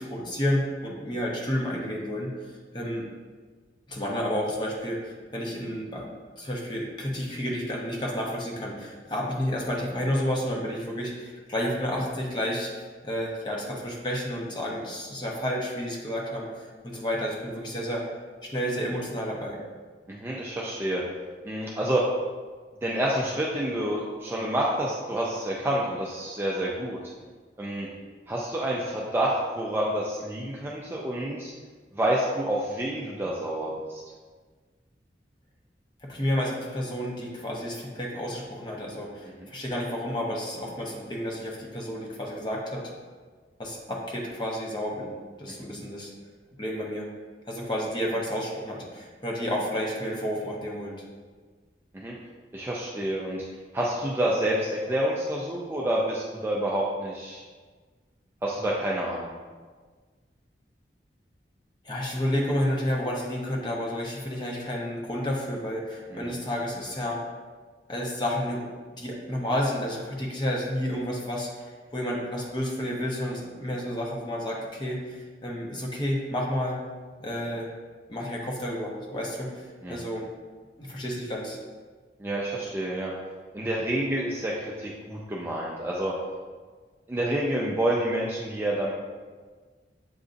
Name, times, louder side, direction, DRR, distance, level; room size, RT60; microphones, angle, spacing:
voice 1, 0.0-3.0 3.9-6.1 6.4-12.7 13.0-18.1 18.4-19.6 36.0-42.9 43.6-45.1 45.4-46.1 46.6-47.1 47.5-51.0 61.8-67.2 67.9-76.8 77.2-77.7 78.1-80.3 80.8-81.6, equal, 25° left, -2 dB, 0.7 m, -31 dB
voice 2, 20.1-21.0 21.4-22.0 22.8-27.0 27.6-27.9 28.3-31.5 31.9-34.0 45.6-45.7 51.9-52.1 52.5-53.4 53.7-57.4 58.4-59.3 66.1-66.3 79.8-80.0 82.2-83.1 83.5-86.1 87.1-88.9, right 1 dB, 15° right, -4 dB, 0.3 m, -28 dB
7.6 x 2.5 x 2.5 m, 1.5 s
head